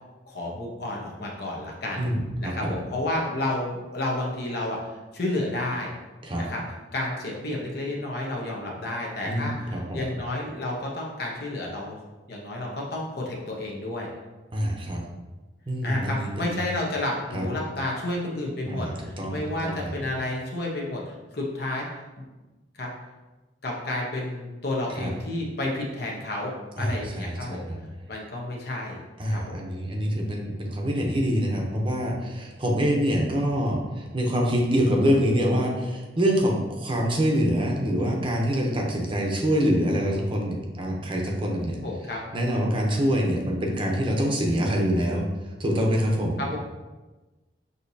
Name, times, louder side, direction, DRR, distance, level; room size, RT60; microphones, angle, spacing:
voice 1, 0.3-2.1 2.4-5.9 6.4-6.6 6.9-11.9 12.3-14.1 15.8-21.9 22.7-22.9 23.6-27.7 28.1-29.0 29.3-29.6 41.8-42.2 46.4-46.6, left 1 dB, 60° left, -2 dB, 0.9 m, -31 dB
voice 2, 2.0-2.7 6.2-6.4 9.3-10.1 14.5-15.0 15.7-16.6 17.3-17.5 18.7-19.9 25.0-25.1 26.8-27.8 29.2-41.8 42.3-45.3 45.6-46.4, equal, 30° right, 0 dB, 0.7 m, -25 dB
6.5 x 2.8 x 2.7 m, 1.2 s
head